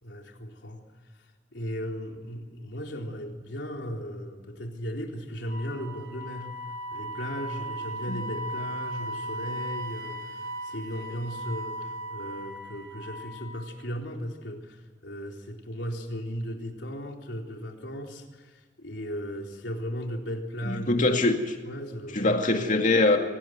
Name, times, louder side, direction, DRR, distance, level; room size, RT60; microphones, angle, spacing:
voice 1, 0.0-0.8 1.5-6.5 6.9-21.3 21.7-22.5, equal, 75° left, 2 dB, 4.0 m, -36 dB
Wind instrument woodwind instrument, 5.4-13.7, right 1 dB, 85° right, 3.9 m, -37 dB
voice 2, 20.6-21.6 22.1-23.2, left 2 dB, 45° left, 4 dB, 2.3 m, -23 dB
24.0 x 19.0 x 9.5 m, 1.4 s
head